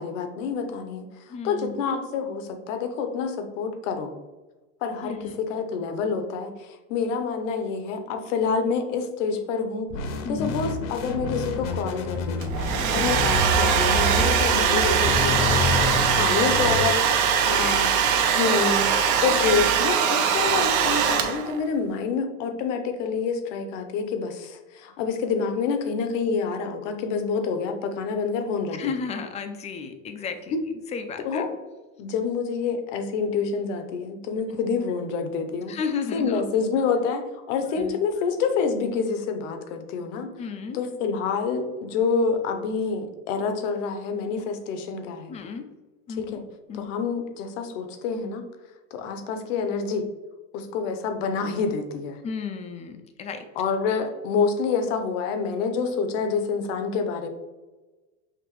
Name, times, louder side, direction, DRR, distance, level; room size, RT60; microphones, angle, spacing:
voice 1, 0.0-4.1 4.8-9.9 10.3-17.9 18.4-28.8 30.5-30.6 31.2-31.5 32.0-35.7 36.1-40.3 40.7-45.4 46.2-46.4 46.7-48.5 48.9-50.1 50.5-52.2 53.6-57.3, left 5 dB, 75° left, 7 dB, 0.8 m, -27 dB
voice 2, 1.3-1.8 5.0-5.4 10.2-10.6 12.8-13.1 16.2-16.3 28.8-30.6 30.9-31.4 34.5-34.6 35.7-36.4 37.7-38.0 40.4-40.8 45.3-45.7 46.1-46.4 46.7-46.9 52.2-53.4, left 5 dB, 20° left, 7 dB, 0.3 m, -33 dB
sound 1, 9.9-16.8, left 2 dB, 45° left, 0.7 m, -28 dB
Domestic sounds home sounds, 12.4-21.6, right 7 dB, 50° right, 0.6 m, -22 dB
5.9 x 2.6 x 3.0 m, 1.2 s
supercardioid pair, 115°, 38 cm